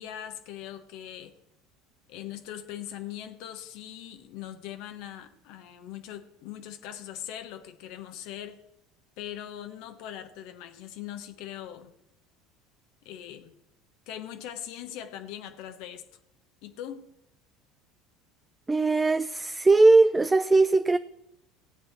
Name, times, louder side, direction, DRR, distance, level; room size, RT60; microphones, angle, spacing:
voice 1, 0.0-1.3 2.1-8.6 9.2-11.9 13.0-13.5 14.1-16.0 16.6-17.1, left 11 dB, 65° left, 1.2 m, -41 dB
voice 2, 18.7-21.0, right 3 dB, 15° right, 0.4 m, -20 dB
16.0 x 8.2 x 4.6 m
hypercardioid pair, 70°, 0 cm